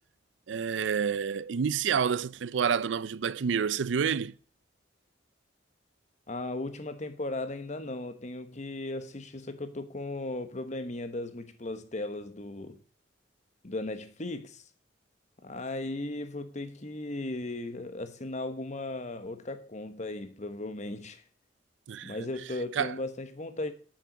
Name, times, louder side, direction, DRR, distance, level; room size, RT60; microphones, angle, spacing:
voice 1, 0.5-4.3 21.9-22.2 22.8-22.9, right 6 dB, 80° right, 0.4 m, -28 dB
voice 2, 6.3-12.8 13.6-14.6 15.4-21.2 22.0-23.7, left 2 dB, 40° left, 1.1 m, -36 dB
8.7 x 7.2 x 6.2 m
head